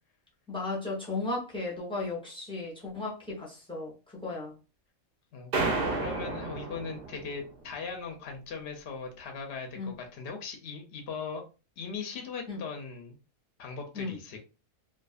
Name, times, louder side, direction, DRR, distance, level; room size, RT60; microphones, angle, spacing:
voice 1, 0.5-4.5 9.7-10.0 12.5-12.6 13.9-14.2, left 3 dB, 5° left, 0.6 m, -35 dB
voice 2, 5.3-11.4 11.8-13.2 13.6-14.4, left 5 dB, 60° left, 0.7 m, -39 dB
sound 1, 5.5-7.5, right 3 dB, 55° right, 0.7 m, -31 dB
2.5 x 2.4 x 2.3 m
omnidirectional pair, 1.5 m